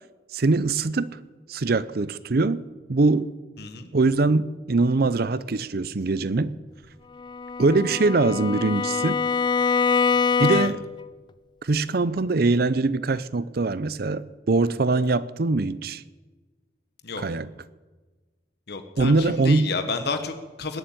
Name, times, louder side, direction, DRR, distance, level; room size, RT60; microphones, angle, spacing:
voice 1, 0.3-1.2 1.5-2.6 2.9-3.3 3.9-6.5 7.6-9.2 10.4-10.8 11.6-16.0 17.2-17.5 19.0-19.7, right 3 dB, 55° right, 0.6 m, -22 dB
voice 2, 3.6-3.9 10.5-10.7 17.0-17.2 18.7-20.8, left 4 dB, 60° left, 1.3 m, -31 dB
Bowed string instrument, 7.2-11.0, left 5 dB, 25° left, 0.4 m, -24 dB
20.5 x 7.3 x 8.9 m
head